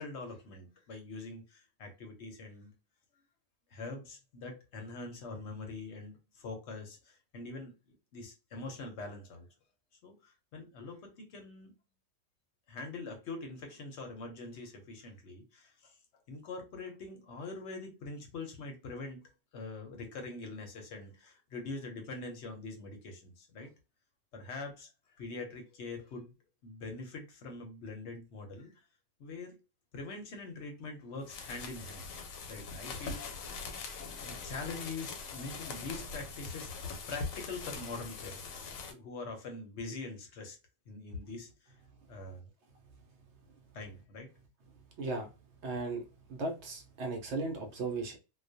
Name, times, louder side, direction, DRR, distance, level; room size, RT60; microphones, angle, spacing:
voice 1, 0.0-2.7 3.7-7.7 8.1-9.5 10.0-11.7 12.7-16.0 16.3-19.2 19.5-23.7 24.3-24.9 25.2-26.3 26.6-28.9 29.2-29.6 29.9-32.2 32.5-33.4 34.2-40.6 40.9-41.8 42.1-42.5 43.7-44.3, left 3 dB, 65° left, 0.8 m, -44 dB
sound 1, 31.2-38.9, left 4 dB, 85° left, 1.0 m, -42 dB
voice 2, 45.0-45.3 45.6-46.0 46.3-48.2, right 3 dB, 65° right, 0.8 m, -36 dB
2.3 x 2.1 x 2.5 m
omnidirectional pair, 1.4 m